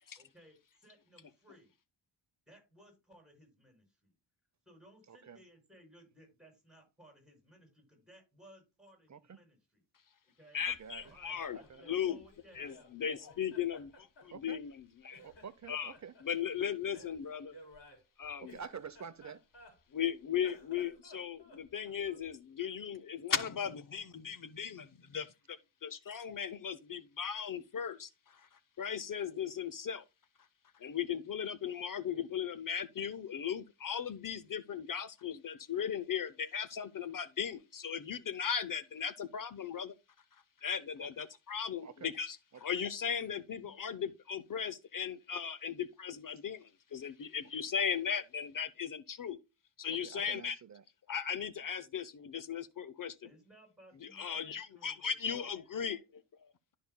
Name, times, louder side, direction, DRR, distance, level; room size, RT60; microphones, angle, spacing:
voice 1, 0.2-1.7 2.5-4.1 4.7-9.8 10.4-10.6 11.0-12.7 13.0-13.6 43.5-44.0 53.2-55.5, equal, ahead, 5.5 m, -60 dB
voice 2, 5.1-5.4 9.1-9.4 10.6-11.1 11.5-12.0 14.3-14.6 15.2-16.1 18.4-19.4 41.0-41.3 41.8-42.1 42.5-42.6 49.9-50.8, right 6 dB, 40° right, 0.7 m, -48 dB
voice 3, 10.5-12.2 12.5-15.2 15.7-15.9 16.2-17.6 18.2-18.6 19.9-28.5 28.8-30.0 30.7-39.9 40.6-49.4 49.8-50.6 51.1-53.2 54.0-56.2, left 8 dB, 45° left, 0.7 m, -37 dB
Laughter, 10.6-12.9 13.3-14.8 15.1-16.3 16.9-20.0 20.3-22.3, equal, 70° left, 4.1 m, -58 dB
12.5 x 5.5 x 2.2 m
cardioid pair, 90°, 45 cm